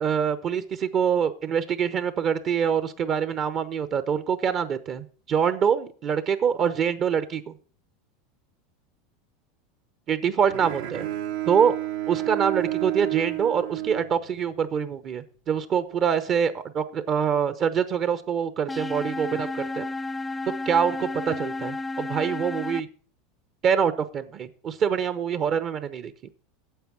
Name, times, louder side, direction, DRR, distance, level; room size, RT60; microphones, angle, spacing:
voice 1, 0.0-7.5 10.1-11.1 11.5-11.7 12.1-19.9 20.7-22.9 23.6-26.1, right 7 dB, 40° right, 12 dB, 0.8 m, -25 dB
Bowed string instrument, 10.5-14.7, right 16 dB, 80° right, 1.6 m, -31 dB
sound 1, 18.7-22.8, left 2 dB, 10° left, 0.5 m, -32 dB
9.1 x 7.1 x 6.1 m, 0.42 s
supercardioid pair, 110°, 0 cm